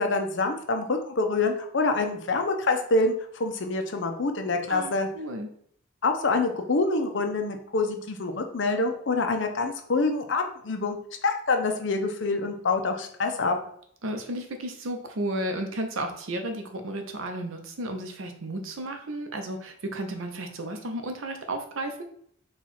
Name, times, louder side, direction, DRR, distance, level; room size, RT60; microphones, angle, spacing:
voice 1, 0.0-5.1 6.0-11.0 11.2-13.6, left 3 dB, 60° left, 5 dB, 0.6 m, -26 dB
voice 2, 4.7-5.5 14.0-22.0, right 1 dB, 75° right, 5 dB, 0.7 m, -33 dB
4.5 x 2.4 x 4.2 m, 0.63 s
head